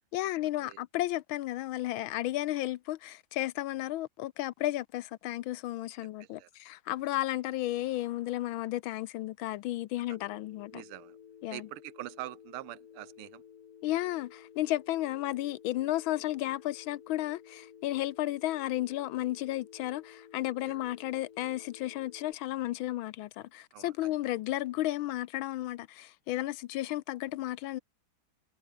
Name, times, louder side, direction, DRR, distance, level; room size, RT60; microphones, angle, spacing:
voice 1, 0.1-10.8 11.4-11.7 13.8-27.8, left 15 dB, 75° left, 1.3 m, -33 dB
voice 2, 6.2-6.5 10.1-10.2 10.7-11.2 11.5-13.4 20.7-20.8 23.7-24.1, right 16 dB, 85° right, 1.5 m, -44 dB
Telephone, 10.1-22.3, left 8 dB, 50° left, 1.4 m, -54 dB
omnidirectional pair, 2.4 m